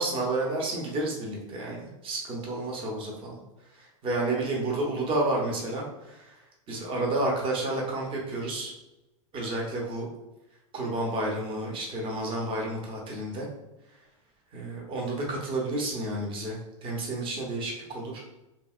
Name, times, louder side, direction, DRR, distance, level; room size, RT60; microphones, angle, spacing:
voice 1, 0.0-3.4 3.8-6.3 6.7-8.7 9.3-10.1 10.7-13.5 14.5-18.2, right 2 dB, 30° right, -2 dB, 0.8 m, -30 dB
2.8 x 2.7 x 2.4 m, 0.96 s
hypercardioid pair, 115°, 17 cm